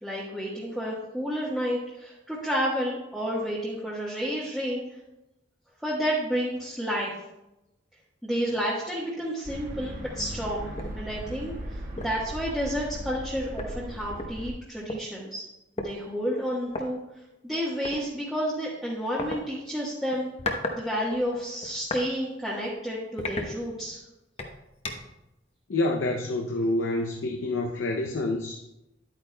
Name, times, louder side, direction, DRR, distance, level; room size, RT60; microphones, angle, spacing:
voice 1, 0.0-4.8 5.8-7.1 8.2-10.7 10.9-15.4 15.8-17.0 17.4-20.3 20.7-24.0, equal, ahead, -8 dB, 1.2 m, -30 dB
sound 1, 9.4-14.5, right 1 dB, 50° right, 1.4 m, -38 dB
sound 2, 10.8-11.0 11.4-11.5 12.0-12.2 13.2-13.3 13.6-15.0 15.8-15.9 16.7-16.8 17.8-18.0 19.2-19.4 20.1-20.8 21.1-22.1 22.5-22.7 23.2-24.0 24.4-25.2, left 2 dB, 35° left, 0.8 m, -34 dB
voice 2, 25.7-28.6, left 2 dB, 85° left, 2 dB, 0.6 m, -27 dB
11.0 x 8.5 x 2.2 m, 0.93 s
head